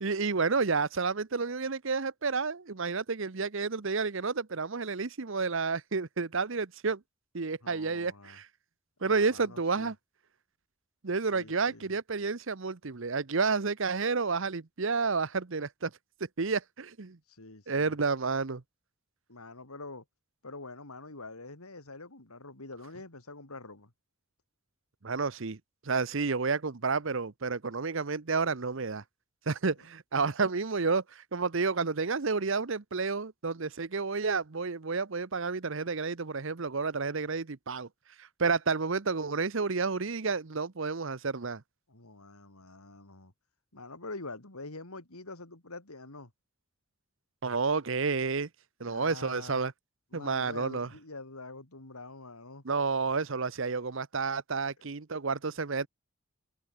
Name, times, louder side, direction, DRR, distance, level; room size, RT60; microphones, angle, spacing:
voice 1, 0.0-7.0 7.3-8.5 9.0-10.0 11.0-15.9 16.4-17.2 17.7-18.6 25.0-25.6 25.8-29.0 29.5-37.9 38.2-41.6 47.4-48.5 48.8-49.7 50.1-50.9 52.6-55.9, right 4 dB, 60° right, 0.8 m, -30 dB
voice 2, 7.6-8.4 9.0-9.9 11.3-11.9 17.3-18.0 19.3-20.0 20.4-23.9 41.9-43.3 43.7-46.3 48.8-49.6 50.1-52.6, left 3 dB, 85° left, 3.5 m, -46 dB
head